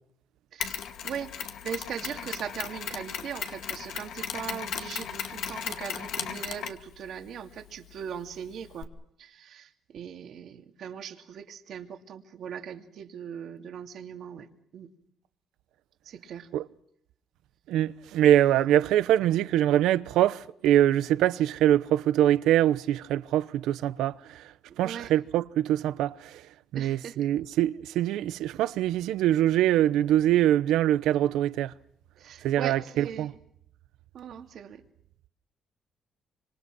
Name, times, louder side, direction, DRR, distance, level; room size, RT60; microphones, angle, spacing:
voice 1, 0.5-1.3 1.6-8.9 9.2-14.9 16.0-16.5 18.7-18.8 24.8-25.1 26.7-27.2 32.2-33.3 34.1-34.8, right 8 dB, 70° right, 2.6 m, -39 dB
Mechanisms, 0.6-8.8, left 8 dB, 75° left, 2.2 m, -37 dB
voice 2, 17.7-24.4 24.8-26.4 26.7-31.7 32.4-33.3, right 12 dB, 90° right, 0.9 m, -24 dB
26.0 x 25.5 x 6.2 m
cardioid pair, 90°, 0 cm